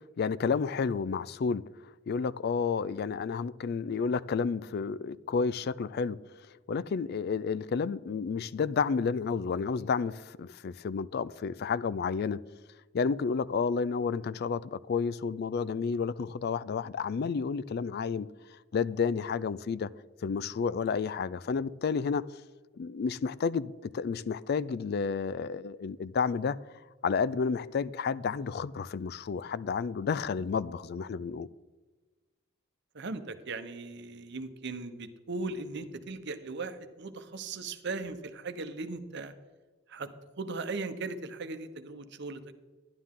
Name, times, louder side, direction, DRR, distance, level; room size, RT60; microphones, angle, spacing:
voice 1, 0.2-1.6 2.1-6.2 6.7-12.4 12.9-18.3 18.7-19.9 20.2-22.2 22.8-26.6 27.0-31.5, left 5 dB, 50° left, 0.3 m, -31 dB
voice 2, 32.9-39.3 39.9-40.1 40.4-42.5, right 3 dB, 55° right, 0.9 m, -38 dB
11.5 x 11.5 x 3.7 m
head